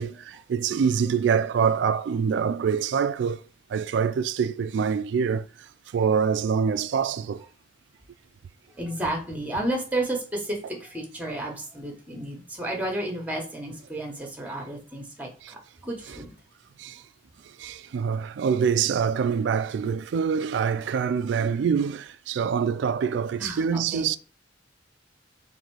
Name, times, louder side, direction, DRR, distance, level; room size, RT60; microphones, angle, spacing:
voice 1, 0.0-3.4 3.7-7.4 15.4-15.5 16.1-16.2 16.8-17.0 17.4-24.2, right 6 dB, 75° right, 0.3 m, -25 dB
voice 2, 8.8-16.3 23.4-24.1, right 1 dB, 10° right, 1.0 m, -32 dB
3.9 x 2.7 x 4.6 m
head